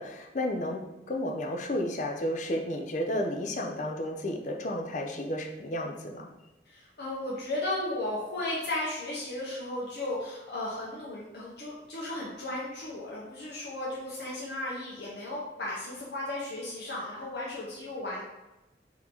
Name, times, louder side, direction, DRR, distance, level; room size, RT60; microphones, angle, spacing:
voice 1, 0.0-6.3, left 1 dB, 45° left, 2 dB, 0.5 m, -32 dB
voice 2, 6.6-18.2, left 1 dB, 65° left, -6 dB, 1.0 m, -35 dB
4.3 x 2.9 x 3.8 m, 1.0 s
head